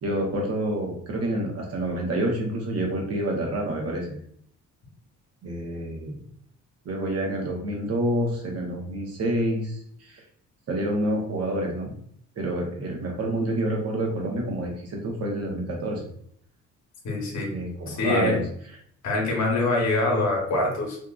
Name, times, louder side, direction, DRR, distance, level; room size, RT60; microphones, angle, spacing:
voice 1, 0.0-4.2 5.4-6.2 6.8-10.2 10.7-11.9 12.4-16.0 17.5-18.4, right 1 dB, 55° right, 0 dB, 0.9 m, -28 dB
voice 2, 17.0-17.6 17.9-18.4 19.0-21.0, left 2 dB, 65° left, 0 dB, 1.0 m, -24 dB
2.7 x 2.4 x 2.3 m, 0.64 s
cardioid pair, 90°, 30 cm